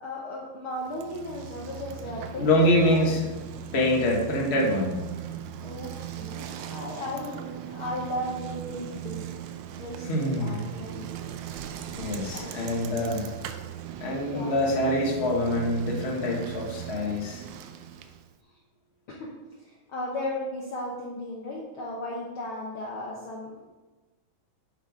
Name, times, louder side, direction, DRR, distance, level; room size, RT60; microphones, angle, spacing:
voice 1, 0.0-3.0 5.6-9.3 9.8-11.2 12.3-12.9 14.3-14.5 19.1-19.3 19.7-23.7, left 1 dB, 60° left, -3 dB, 1.5 m, -36 dB
Bicycle, 0.8-18.3, right 10 dB, 80° right, 1.9 m, -39 dB
voice 2, 2.4-3.2 3.7-5.0 10.1-10.7 11.9-13.3 14.0-17.4, left 1 dB, 30° left, -2 dB, 1.3 m, -25 dB
10.0 x 6.2 x 3.7 m, 1.2 s
omnidirectional pair, 3.4 m